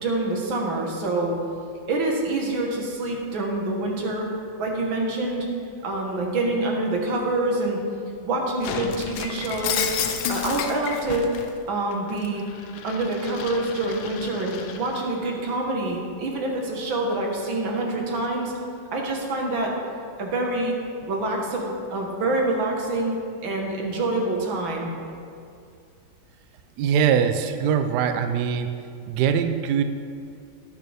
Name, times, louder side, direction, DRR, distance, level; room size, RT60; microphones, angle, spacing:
voice 1, 0.0-1.3 1.9-4.3 4.6-5.5 5.8-7.8 8.2-9.8 10.3-11.3 11.7-12.4 12.8-18.5 18.9-19.7 20.2-20.7 21.1-23.2 23.4-24.9, right 2 dB, 85° right, 0 dB, 2.2 m, -26 dB
Shatter, 8.6-11.5 11.9-15.1, left 8 dB, 85° left, 1.5 m, -31 dB
voice 2, 26.8-28.7 29.1-29.8, right 7 dB, 70° right, 8 dB, 1.0 m, -22 dB
17.5 x 6.5 x 3.5 m, 2.4 s
omnidirectional pair, 2.1 m